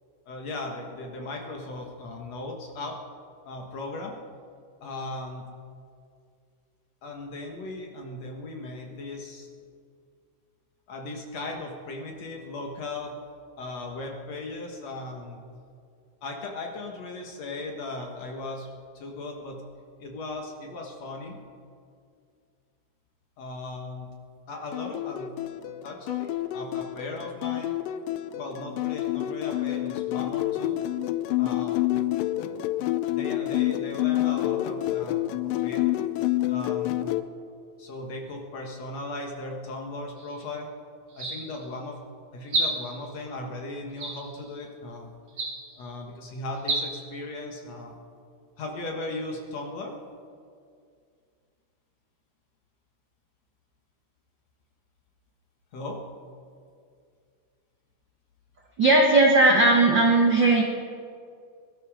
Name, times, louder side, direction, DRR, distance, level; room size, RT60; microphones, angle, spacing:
voice 1, 0.3-3.0 3.4-4.1 4.8-5.5 7.0-9.5 10.9-13.2 13.6-15.4 16.2-18.7 18.9-19.6 20.0-21.4 23.4-24.1 24.5-25.3 25.8-27.7 28.4-30.8 31.4-31.9 33.1-35.8 36.5-37.1 37.8-40.7 41.1-42.0 42.3-45.1 45.8-48.0 48.6-50.0 55.7-56.0, left 2 dB, 55° left, 1 dB, 2.3 m, -37 dB
sound 1, 24.7-37.2, left 15 dB, 80° left, 2.1 m, -28 dB
sound 2, 40.2-40.4 41.1-41.7 42.5-43.1 44.0-44.5 45.3-45.8 46.6-46.8, right 2 dB, 40° right, 3.6 m, -31 dB
voice 2, 58.8-60.6, right 2 dB, 75° right, 0 dB, 1.0 m, -18 dB
22.0 x 12.5 x 4.9 m, 2.3 s
omnidirectional pair, 4.2 m